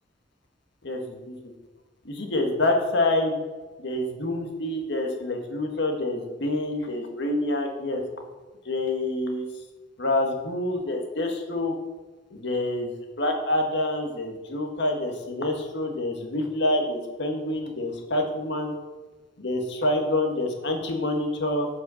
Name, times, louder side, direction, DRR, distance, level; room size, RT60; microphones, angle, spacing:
voice 1, 2.0-3.4 3.8-8.0 8.6-9.4 10.0-11.7 12.3-12.9 13.2-18.7 19.4-21.7, left 1 dB, 65° left, 3 dB, 1.7 m, -27 dB
8.0 x 5.9 x 6.4 m, 1.3 s
head